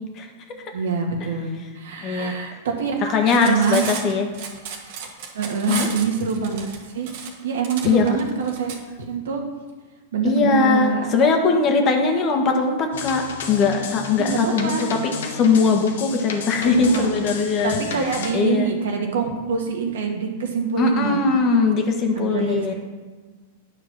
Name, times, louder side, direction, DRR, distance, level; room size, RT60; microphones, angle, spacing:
voice 1, 0.7-3.9 5.3-7.1 7.4-8.7 9.1-9.4 10.1-11.3 14.2-14.9 16.7-17.1 17.6-21.2 22.2-22.7, right 5 dB, 80° right, 1 dB, 1.8 m, -25 dB
voice 2, 2.0-2.4 3.0-4.3 5.7-5.9 7.8-8.0 10.2-13.2 13.5-17.8 18.3-18.7 20.8-22.7, left 4 dB, 35° left, 3 dB, 1.5 m, -20 dB
Cutlery silverware, 3.1-8.8, right 6 dB, 60° right, 1.6 m, -33 dB
sound 1, 12.9-18.3, left 5 dB, 80° left, 1.3 m, -33 dB
9.8 x 5.1 x 6.1 m, 1.4 s
hypercardioid pair, 125°, 0 cm